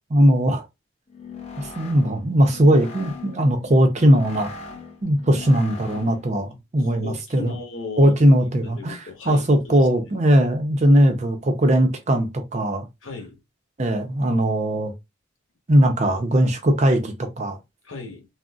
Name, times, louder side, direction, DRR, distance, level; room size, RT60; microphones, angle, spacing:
voice 1, 0.1-0.6 1.6-4.5 5.0-7.6 8.0-12.9 13.8-14.9 15.7-17.6, equal, 35° right, 0.5 m, -19 dB
sound 1, 1.1-6.4, left 4 dB, 30° left, 0.5 m, -39 dB
voice 2, 6.5-8.5 8.7-9.9 13.0-13.4 17.8-18.3, left 3 dB, 70° left, 1.1 m, -37 dB
3.7 x 2.0 x 2.3 m
head